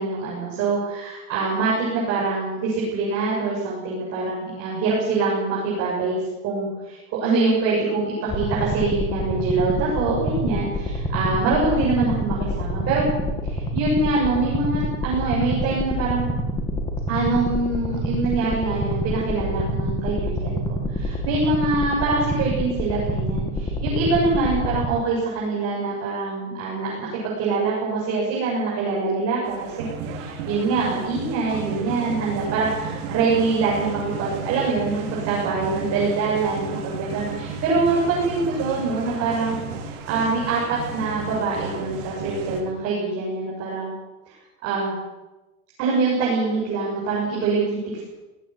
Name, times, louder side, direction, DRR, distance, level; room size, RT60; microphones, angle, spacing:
voice 1, 0.0-6.2 6.4-13.0 13.4-16.3 17.1-29.9 30.1-39.6 40.1-43.9 44.3-44.4 44.6-45.0 45.8-48.0, right 3 dB, 35° right, -5 dB, 8.0 m, -24 dB
sound 1, 8.3-24.9, equal, 10° left, 1.9 m, -27 dB
sound 2, 29.4-42.6, right 5 dB, 55° right, 4.5 m, -33 dB
18.5 x 17.5 x 8.2 m, 1.1 s
supercardioid pair, 155°, 44 cm